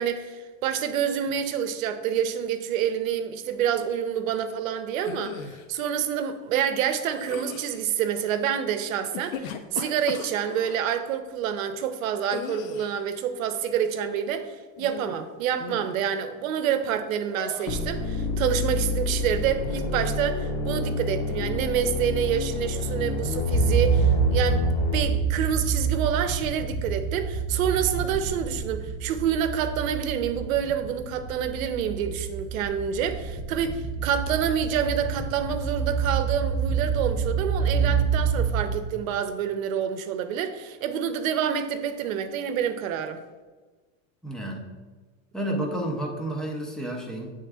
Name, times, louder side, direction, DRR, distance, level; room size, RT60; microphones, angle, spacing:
voice 1, 0.0-14.5 14.8-24.7 24.9-43.2, right 8 dB, 80° right, 9 dB, 0.7 m, -27 dB
sound 1, 5.0-5.7 7.1-7.8 9.0-10.8 12.3-13.0 14.8-15.3 15.6-16.0 17.4-17.8, left 7 dB, 80° left, 0.7 m, -37 dB
sound 2, 17.7-25.0, left 3 dB, 50° left, 0.8 m, -28 dB
sound 3, 23.5-39.2, right 6 dB, 15° left, 0.7 m, -27 dB
voice 2, 44.2-44.7 45.3-47.3, right 1 dB, ahead, 0 dB, 0.4 m, -30 dB
7.9 x 3.5 x 3.4 m, 1.3 s
supercardioid pair, 140°, 40 cm